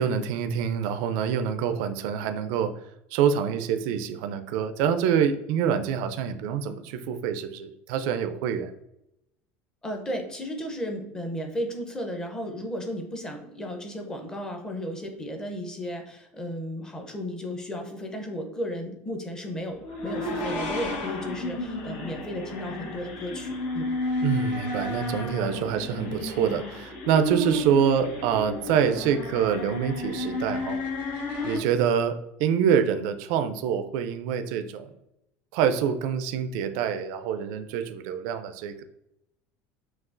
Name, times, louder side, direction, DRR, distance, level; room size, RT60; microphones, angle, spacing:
voice 1, 0.0-2.7 3.1-8.7 24.2-30.8 31.4-34.9 35.5-38.8, right 8 dB, 65° right, 8 dB, 0.4 m, -26 dB
voice 2, 9.8-23.9, equal, 10° left, 3 dB, 0.7 m, -34 dB
sound 1, 19.8-31.6, left 2 dB, 75° left, 1.3 m, -32 dB
5.9 x 2.4 x 2.5 m, 0.83 s
cardioid pair, 155°, 6 cm